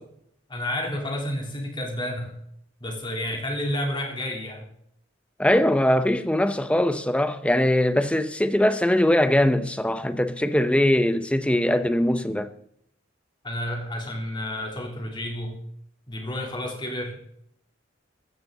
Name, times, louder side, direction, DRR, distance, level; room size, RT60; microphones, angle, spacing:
voice 1, 0.5-2.4 2.8-4.7 13.4-15.6 16.1-17.2, left 1 dB, 25° left, 3.4 m, -30 dB
voice 2, 5.4-12.5, left 1 dB, 5° left, 0.8 m, -21 dB
14.5 x 14.5 x 4.0 m
head